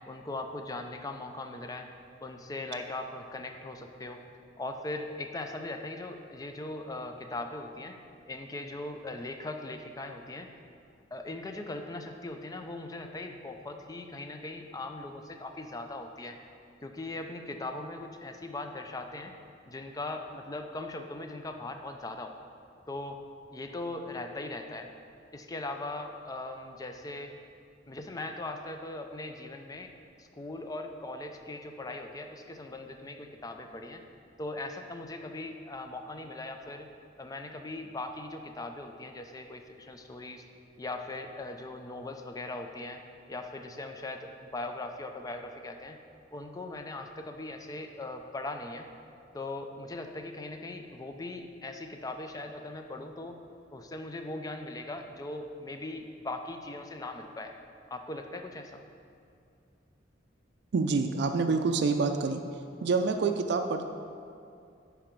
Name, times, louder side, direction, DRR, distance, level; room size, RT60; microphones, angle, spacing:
voice 1, 0.1-1.9 2.2-4.2 4.6-8.0 8.3-10.5 11.1-16.4 16.8-19.3 19.7-22.3 22.9-23.2 23.5-24.9 25.3-27.3 27.9-29.9 30.2-34.0 34.4-36.9 37.2-40.4 40.8-43.0 43.3-46.0 46.3-48.9 49.3-53.4 53.7-57.5 57.9-58.8, left 2 dB, 20° left, 5 dB, 0.4 m, -39 dB
voice 2, 60.7-62.4 62.8-63.9, right 4 dB, 65° right, 5 dB, 0.4 m, -27 dB
7.4 x 4.8 x 5.2 m, 2.5 s
head